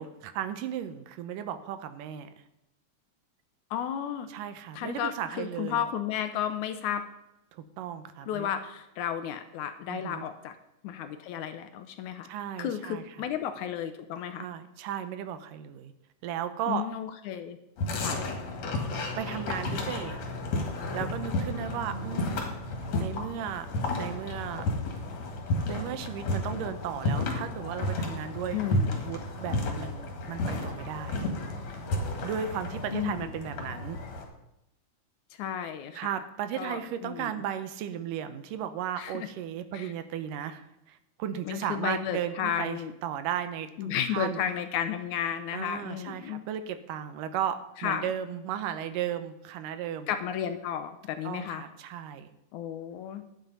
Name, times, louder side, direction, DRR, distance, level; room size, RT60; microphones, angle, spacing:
voice 1, 0.0-2.3 4.3-5.8 7.5-8.5 9.9-10.3 12.3-13.0 14.4-15.9 16.2-16.9 19.2-20.2 20.9-22.5 22.8-23.7 24.0-24.7 25.7-28.6 29.0-31.2 32.2-34.0 35.9-44.4 45.5-50.1 51.2-52.3, right 9 dB, 80° right, 11 dB, 2.4 m, -35 dB
voice 2, 3.7-4.3 4.7-7.0 8.3-10.6 10.8-12.3 12.6-14.5 16.7-17.6 17.9-18.2 28.5-29.0 32.9-33.3 35.4-36.1 36.6-37.3 39.0-39.3 39.7-39.9 41.5-42.9 43.8-46.5 47.8-48.1 50.1-51.6 52.5-53.2, left 9 dB, 80° left, 9 dB, 1.9 m, -33 dB
sound 1, 17.8-34.2, left 2 dB, 55° left, 2.8 m, -32 dB
11.0 x 9.2 x 5.4 m, 0.87 s
omnidirectional pair, 3.8 m